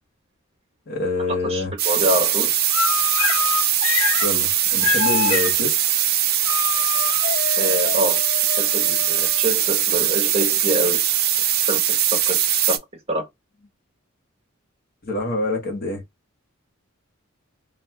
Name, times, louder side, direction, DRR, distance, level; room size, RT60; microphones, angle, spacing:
voice 1, 0.9-1.7 4.2-5.8 15.0-16.0, left 2 dB, 45° left, 1.1 m, -26 dB
voice 2, 1.4-2.5 7.6-8.2 8.6-11.0 11.7-12.4 12.7-12.8 13.1-13.2, right 1 dB, 30° right, 1.4 m, -25 dB
sound 1, 1.8-12.8, right 11 dB, 50° right, 0.6 m, -21 dB
sound 2, 2.7-4.3 4.8-5.5 6.4-9.7, left 7 dB, 75° left, 0.4 m, -26 dB
2.4 x 2.3 x 3.4 m
head